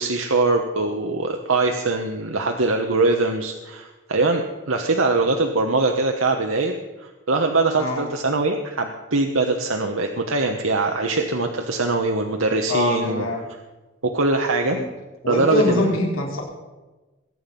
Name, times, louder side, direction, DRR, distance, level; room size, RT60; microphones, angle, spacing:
voice 1, 0.0-6.8 7.3-13.3 14.0-14.8 15.3-16.0, right 3 dB, 85° right, 3 dB, 1.2 m, -22 dB
voice 2, 7.7-8.1 12.7-13.4 14.7-14.9 15.2-16.4, left 1 dB, 90° left, -1 dB, 3.9 m, -23 dB
22.0 x 9.5 x 5.4 m, 1.2 s
head